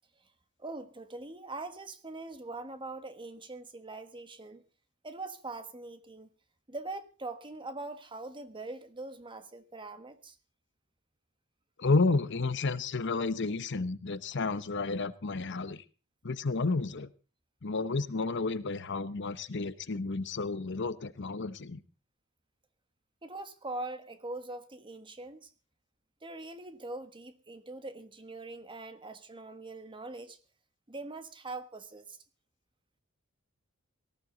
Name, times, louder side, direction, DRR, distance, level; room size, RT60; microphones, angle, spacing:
voice 1, 0.6-4.6 5.0-6.3 6.7-10.4 23.2-25.5 26.2-30.4 30.9-32.2, right 2 dB, 25° right, 1.4 m, -42 dB
voice 2, 11.8-15.8 16.2-17.1 17.6-21.8, left 3 dB, 55° left, 0.8 m, -31 dB
18.5 x 15.0 x 3.9 m
head